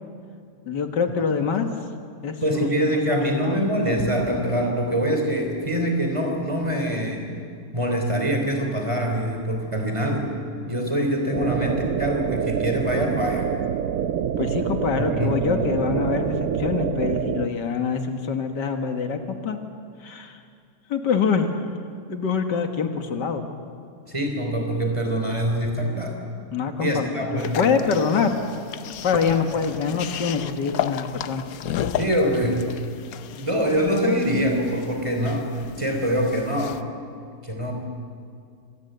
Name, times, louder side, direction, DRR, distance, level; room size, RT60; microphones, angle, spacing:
voice 1, 0.7-1.7 2.2-3.6 14.4-19.6 20.0-20.4 20.9-21.7 22.1-23.4 26.5-28.4 29.0-31.5, left 6 dB, 85° left, 6 dB, 2.2 m, -25 dB
voice 2, 2.4-7.3 7.7-10.3 10.7-13.5 14.9-15.6 24.1-26.2 26.8-27.6 32.0-32.7 33.3-35.5 35.8-36.8 37.4-37.7, equal, 15° right, 3 dB, 3.4 m, -24 dB
sound 1, 11.3-17.5, right 9 dB, 60° right, 1.0 m, -26 dB
sound 2, 27.4-36.8, left 9 dB, 65° left, 1.1 m, -33 dB
24.5 x 18.0 x 8.0 m, 2.3 s
omnidirectional pair, 1.8 m